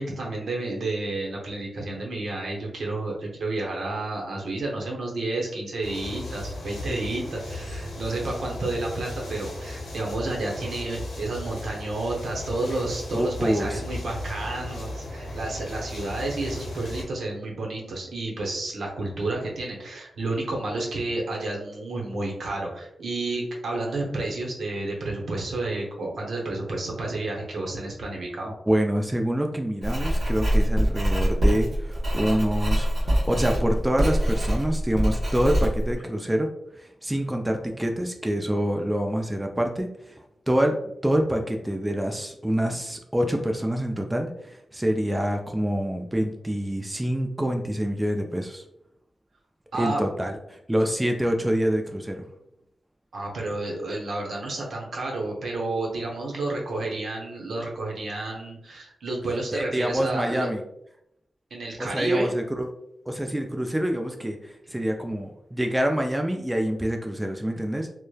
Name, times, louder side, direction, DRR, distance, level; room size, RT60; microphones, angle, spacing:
voice 1, 0.0-28.5 49.7-50.0 53.1-60.5 61.5-62.3, right 2 dB, 75° right, -1 dB, 0.7 m, -30 dB
sound 1, 5.8-17.0, left 1 dB, 80° left, 0.7 m, -36 dB
voice 2, 13.1-13.8 28.4-36.5 36.8-48.6 49.7-52.3 59.5-60.6 61.8-62.7 63.1-67.9, equal, 15° right, 3 dB, 0.4 m, -26 dB
Writing, 29.8-35.9, equal, 55° right, 1.0 m, -24 dB
3.0 x 2.0 x 2.3 m, 0.77 s
cardioid pair, 50°, 0 cm